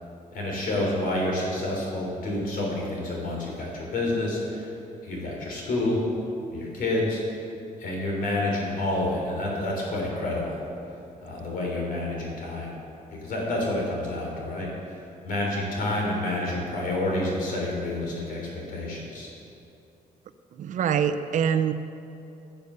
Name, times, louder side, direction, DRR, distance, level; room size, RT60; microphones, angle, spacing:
voice 1, 0.3-4.7 5.0-6.0 6.5-7.2 7.8-10.6 11.2-12.7 13.1-15.0 15.2-19.3, left 1 dB, 65° left, -2 dB, 3.5 m, -29 dB
voice 2, 20.5-21.7, right 8 dB, 55° right, 10 dB, 0.6 m, -24 dB
15.5 x 6.8 x 6.8 m, 2.7 s
cardioid pair, 170°, 15 cm